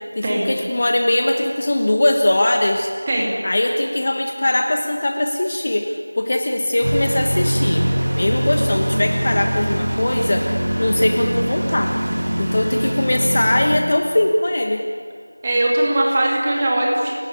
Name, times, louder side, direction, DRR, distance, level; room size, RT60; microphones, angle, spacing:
voice 1, 0.1-2.9 3.4-7.9 8.1-10.5 10.8-11.9 12.4-14.8, left 1 dB, 25° left, 3 dB, 1.3 m, -20 dB
sound 1, 6.8-13.8, equal, 45° right, 4.0 m, -22 dB
voice 2, 15.4-17.1, right 1 dB, 15° right, -2 dB, 2.7 m, -19 dB
29.5 x 18.5 x 9.9 m, 2.2 s
figure-of-eight pair, 175°, 0 cm